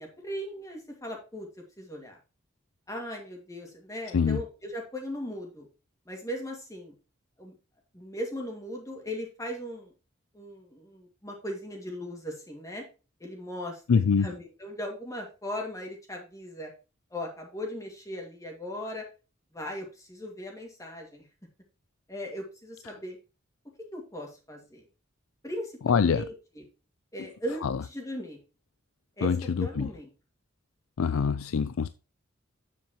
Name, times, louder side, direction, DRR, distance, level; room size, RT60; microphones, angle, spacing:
voice 1, 0.0-1.5 1.8-2.2 2.9-5.7 6.1-6.9 7.4-7.5 7.9-9.9 10.3-12.8 13.2-13.8 14.2-16.7 17.1-19.0 19.5-21.2 22.1-23.2 23.9-24.8 25.4-26.6 27.1-28.4 29.2-29.3 29.6-30.1, equal, 15° left, 2.1 m, -38 dB
voice 2, 13.9-14.3 25.8-26.3 27.6-27.8 29.2-29.9 31.0-31.9, left 6 dB, 85° left, 0.4 m, -25 dB
9.1 x 7.6 x 3.0 m
head